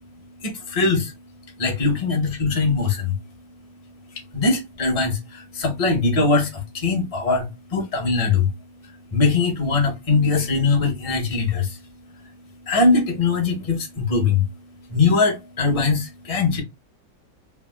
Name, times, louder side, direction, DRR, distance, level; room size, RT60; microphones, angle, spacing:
voice 1, 0.4-1.1 1.6-3.1 4.3-8.5 9.1-11.8 12.7-14.4 14.9-16.6, left 4 dB, 30° left, 0.7 m, -21 dB
3.4 x 2.4 x 2.3 m
omnidirectional pair, 2.0 m